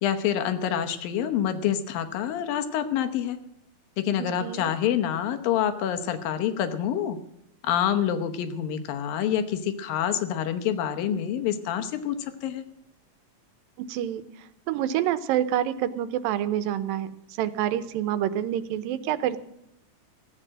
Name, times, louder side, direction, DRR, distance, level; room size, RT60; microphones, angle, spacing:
voice 1, 0.0-3.4 4.0-7.2 7.6-12.6, left 9 dB, 85° left, 8 dB, 2.8 m, -27 dB
voice 2, 4.2-4.7 13.9-14.2 14.7-17.1 17.4-19.4, right 11 dB, 85° right, 13 dB, 2.6 m, -27 dB
16.0 x 8.9 x 7.5 m, 0.78 s
omnidirectional pair, 3.9 m